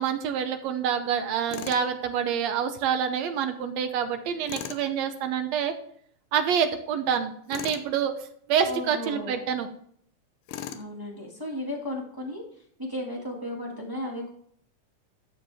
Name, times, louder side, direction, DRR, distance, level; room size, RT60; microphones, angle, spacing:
voice 1, 0.0-5.7 6.3-8.1 8.5-9.7, right 8 dB, 75° right, 8 dB, 1.7 m, -27 dB
Tools, 1.5-1.9 4.5-4.9 7.5-7.9 10.5-10.9, left 10 dB, 85° left, 2.3 m, -37 dB
voice 2, 8.6-9.4 10.7-14.3, left 1 dB, 10° right, -2 dB, 1.2 m, -35 dB
12.5 x 7.1 x 3.5 m, 0.65 s
omnidirectional pair, 3.7 m